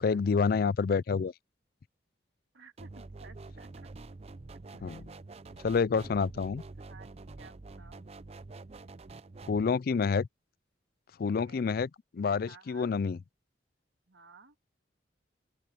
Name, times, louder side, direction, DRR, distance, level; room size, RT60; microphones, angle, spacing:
voice 1, 0.0-1.3 4.8-5.1 5.6-6.6 9.5-10.3 11.2-13.2, left 5 dB, 50° left, 0.4 m, -28 dB
voice 2, 2.5-3.9 4.8-5.1 6.9-8.1 11.2-11.6 12.5-13.0 14.1-14.6, right 4 dB, 75° right, 2.0 m, -56 dB
sound 1, 2.8-9.6, right 3 dB, 35° right, 0.5 m, -47 dB
open air
head